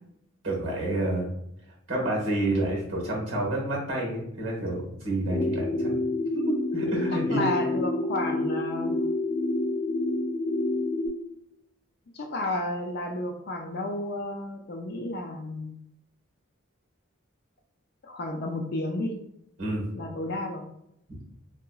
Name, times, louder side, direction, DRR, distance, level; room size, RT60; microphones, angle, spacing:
voice 1, 0.4-1.3 1.9-5.9 6.5-7.4 19.6-19.9 21.1-21.2, right 1 dB, 60° right, -2 dB, 1.2 m, -29 dB
sound 1, 5.3-11.1, left 2 dB, 5° left, 0.6 m, -28 dB
voice 2, 7.3-8.9 12.1-15.7 18.0-19.2 19.9-20.6, left 1 dB, 50° left, 2 dB, 0.4 m, -32 dB
3.7 x 2.8 x 2.3 m, 0.78 s
head